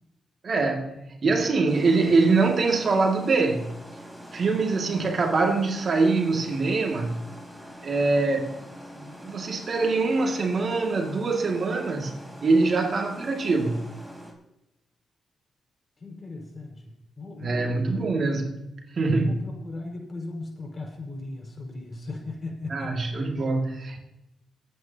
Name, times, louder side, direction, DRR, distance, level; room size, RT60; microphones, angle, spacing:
voice 1, 0.4-3.8 4.3-7.2 7.8-8.6 8.9-12.1 12.4-13.8 17.4-19.4 22.7-24.0, right 3 dB, 55° right, 2.2 m, -24 dB
sound 1, 1.7-14.3, equal, 5° right, 3.7 m, -44 dB
voice 2, 16.0-18.0 19.2-22.9, left 2 dB, 40° left, 5.2 m, -38 dB
27.0 x 9.2 x 2.9 m
cardioid pair, 60°, 0 cm